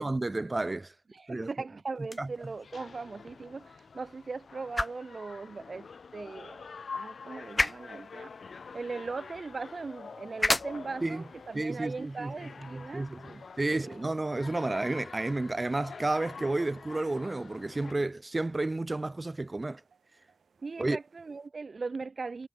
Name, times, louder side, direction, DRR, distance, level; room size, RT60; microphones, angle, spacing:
voice 1, 0.0-0.9 1.3-1.5 2.2-2.3 11.0-11.2 11.5-12.3 12.7-19.8 20.8-21.0, right 2 dB, 25° right, 0.8 m, -31 dB
voice 2, 1.1-6.6 6.9-14.0 16.6-16.7 18.0-18.1 20.6-22.5, right 4 dB, 50° right, 1.3 m, -39 dB
sound 1, 1.9-14.0, left 2 dB, 20° left, 0.9 m, -38 dB
sound 2, 2.4-17.9, left 5 dB, 70° left, 1.6 m, -47 dB
sound 3, 7.4-21.5, right 6 dB, 85° right, 5.6 m, -69 dB
wide cardioid pair, 95°, 0 cm